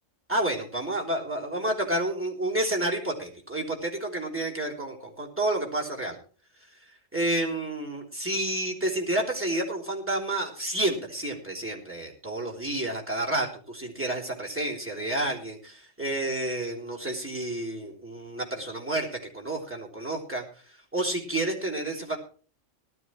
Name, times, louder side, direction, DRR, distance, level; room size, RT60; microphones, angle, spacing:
voice 1, 0.3-6.2 7.1-20.4 20.9-22.2, right 1 dB, 10° right, -2 dB, 3.6 m, -30 dB
19.5 x 12.0 x 3.1 m, 0.41 s
omnidirectional pair, 1.3 m